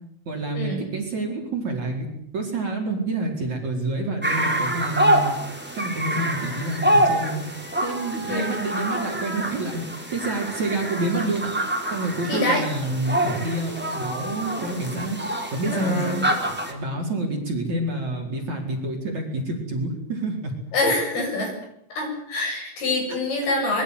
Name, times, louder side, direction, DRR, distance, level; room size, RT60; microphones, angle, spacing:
voice 1, 0.3-2.1 2.3-5.3 5.8-7.4 7.8-9.8 10.1-11.5 11.9-15.2 15.5-16.0 16.7-20.5 23.1-23.2, right 2 dB, 35° right, 1 dB, 5.5 m, -28 dB
sound 1, 4.2-16.7, right 1 dB, ahead, 3.6 m, -26 dB
voice 2, 12.3-12.6 15.7-16.2 20.7-21.5 21.9-23.8, left 1 dB, 50° left, 3 dB, 9.5 m, -25 dB
25.0 x 23.0 x 8.4 m, 0.73 s
omnidirectional pair, 5.6 m